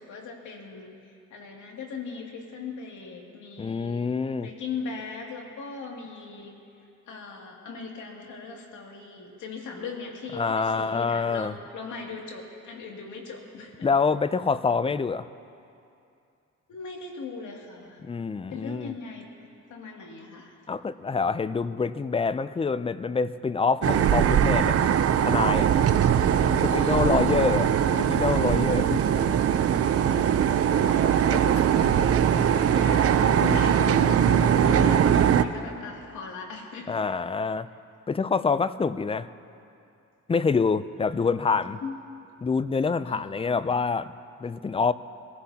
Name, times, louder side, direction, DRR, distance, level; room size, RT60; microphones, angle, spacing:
voice 1, 0.0-4.0 4.4-6.5 7.1-13.9 16.7-18.0 18.5-20.6 26.0-27.7 30.0-32.2 32.6-37.0 41.1-41.5 41.8-42.0 43.0-43.8, left 5 dB, 75° left, 0 dB, 2.5 m, -39 dB
voice 2, 3.6-4.5 10.4-11.6 13.8-15.3 18.0-18.9 20.7-24.8 25.2-25.7 26.6-27.7 28.0-29.3 31.3-31.5 36.9-37.7 38.1-39.3 40.3-41.8 42.4-44.1 44.4-44.9, left 5 dB, 20° left, 14 dB, 0.5 m, -26 dB
sound 1, 23.8-35.4, right 9 dB, 50° right, 0.6 m, -21 dB
24.5 x 15.5 x 2.9 m, 2.6 s
cardioid pair, 90°, 30 cm